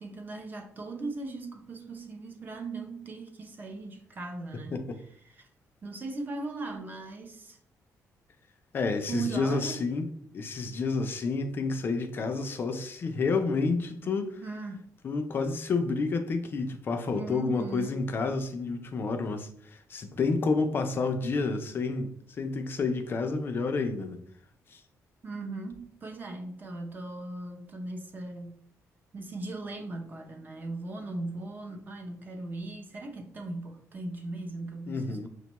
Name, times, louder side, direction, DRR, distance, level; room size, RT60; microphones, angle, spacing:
voice 1, 0.0-4.9 5.3-5.5 5.8-7.6 9.1-9.8 14.4-14.9 17.1-18.0 25.2-28.6 29.1-35.3, right 3 dB, 30° right, 0.5 m, -38 dB
voice 2, 8.7-10.1 10.3-14.4 15.0-24.2 24.7-24.8 34.9-35.3, left 4 dB, 35° left, 0.4 m, -30 dB
5.9 x 2.2 x 2.9 m
cardioid pair, 170°, 6 cm